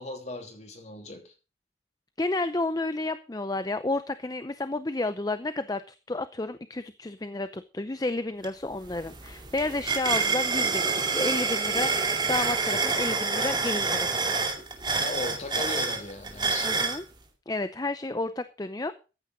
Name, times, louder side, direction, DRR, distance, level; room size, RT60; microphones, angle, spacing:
voice 1, 0.0-1.3 15.0-16.9, left 2 dB, 40° left, 3.0 m, -37 dB
voice 2, 2.2-14.1 16.6-17.0 17.5-18.9, left 2 dB, 20° left, 0.6 m, -31 dB
sound 1, 8.4-8.5 8.8-17.0, right 4 dB, 25° right, 2.3 m, -27 dB
14.5 x 9.8 x 4.0 m
head